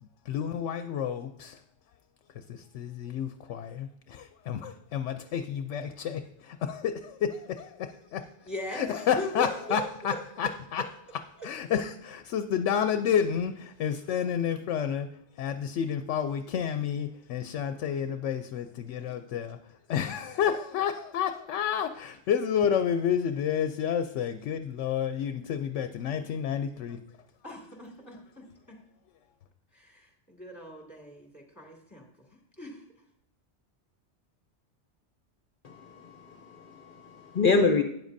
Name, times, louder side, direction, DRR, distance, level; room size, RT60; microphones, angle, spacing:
voice 1, 0.3-1.6 2.4-8.3 8.7-10.9 11.4-15.1 15.4-19.6 19.9-27.0, left 8 dB, 80° left, 0.9 m, -30 dB
voice 2, 8.5-9.8 19.0-19.1 27.4-28.8 29.7-32.1 32.6-32.8, equal, 15° left, 2.1 m, -40 dB
voice 3, 35.6-37.8, left 4 dB, 50° left, 0.9 m, -27 dB
12.5 x 9.4 x 2.6 m
omnidirectional pair, 1.2 m